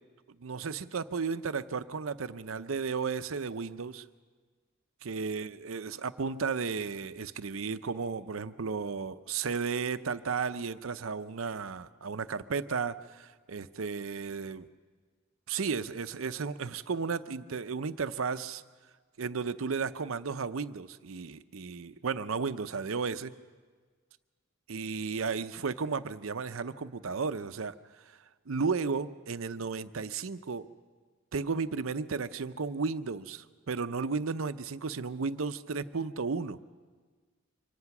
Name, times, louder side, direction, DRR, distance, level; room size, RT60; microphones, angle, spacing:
voice 1, 0.4-4.0 5.0-14.7 15.5-18.6 19.2-23.3 24.7-27.8 28.5-30.7 31.3-36.6, right 5 dB, 80° right, 12 dB, 0.7 m, -34 dB
24.5 x 18.0 x 6.0 m, 1.5 s
head